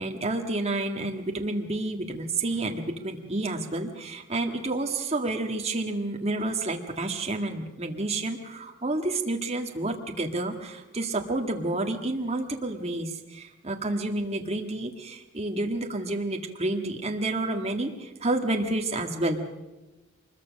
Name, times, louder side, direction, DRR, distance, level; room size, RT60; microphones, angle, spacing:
voice 1, 0.0-19.4, right 2 dB, 30° right, 3 dB, 1.8 m, -29 dB
24.0 x 21.5 x 6.4 m, 1.1 s
head